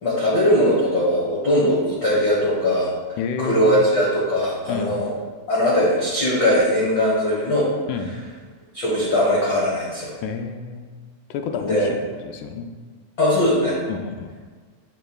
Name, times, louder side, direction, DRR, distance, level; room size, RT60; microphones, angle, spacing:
voice 1, 0.0-2.9 3.4-5.1 5.5-7.7 8.7-10.1 11.7-11.9 13.2-13.8, left 1 dB, 65° left, -6 dB, 1.1 m, -20 dB
voice 2, 3.2-3.9 4.7-5.0 7.9-8.1 10.2-10.9 11.3-12.0 12.2-12.7 13.9-14.3, left 6 dB, 80° left, 5 dB, 1.9 m, -29 dB
7.8 x 5.3 x 2.3 m, 1.4 s
omnidirectional pair, 3.6 m